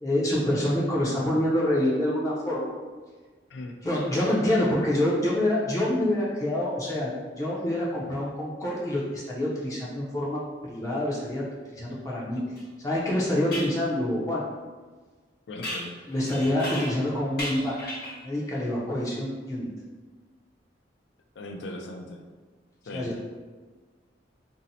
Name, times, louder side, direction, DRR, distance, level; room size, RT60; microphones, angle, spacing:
voice 1, 0.0-2.7 3.8-10.4 10.7-11.4 11.7-12.4 12.8-14.4 16.1-17.9 18.2-19.7 22.9-23.2, left 1 dB, 20° left, -6 dB, 0.5 m, -26 dB
voice 2, 3.5-3.8 12.4-12.5 15.5-16.0 21.4-22.2 22.8-23.1, left 1 dB, 80° left, 4 dB, 0.4 m, -39 dB
sound 1, 12.6-12.7 13.5-13.8 15.6-17.1 17.4-18.3, equal, 60° left, 0.9 m, -35 dB
2.6 x 2.0 x 3.9 m, 1.4 s
head